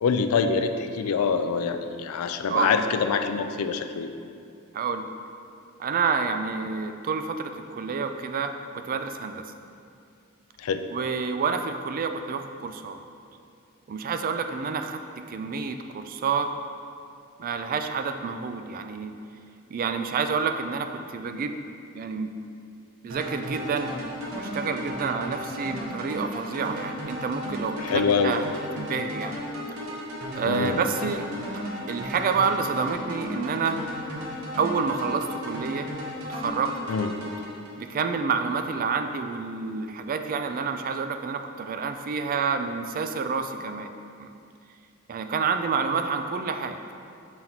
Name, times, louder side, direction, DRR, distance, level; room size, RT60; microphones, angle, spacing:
voice 1, 0.0-4.1 10.6-10.8 27.8-28.4 30.3-30.8 36.9-37.1, left 5 dB, 85° left, 8 dB, 0.4 m, -25 dB
voice 2, 4.7-5.1 5.8-8.5 8.8-9.4 10.9-13.0 13.9-15.0 15.3-16.5 17.4-19.1 19.7-21.6 21.9-22.3 23.0-23.9 24.4-28.5 28.7-29.3 30.3-31.3 31.9-33.8 34.6-35.9 36.2-36.7 37.8-43.9 44.2-44.3 45.1-46.9, right 5 dB, 40° right, 7 dB, 0.3 m, -28 dB
sound 1, 23.1-38.2, equal, 90° right, 1.1 m, -35 dB
5.7 x 4.4 x 3.9 m, 2.4 s
head